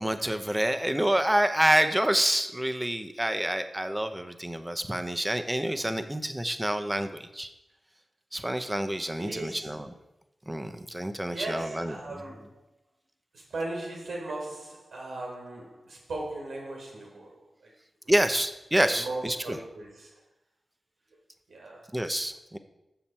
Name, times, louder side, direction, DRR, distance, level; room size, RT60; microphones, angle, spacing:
voice 1, 0.0-7.5 8.3-9.9 10.5-11.9 18.1-19.6 21.9-22.6, right 1 dB, 15° right, 8 dB, 0.7 m, -27 dB
voice 2, 9.2-9.8 11.3-12.6 13.3-17.7 18.0-18.1 19.0-20.2 21.1-21.2 21.5-21.9, right 2 dB, 85° right, -1 dB, 1.5 m, -38 dB
7.3 x 5.8 x 4.3 m, 0.91 s
cardioid pair, 40°, 0 cm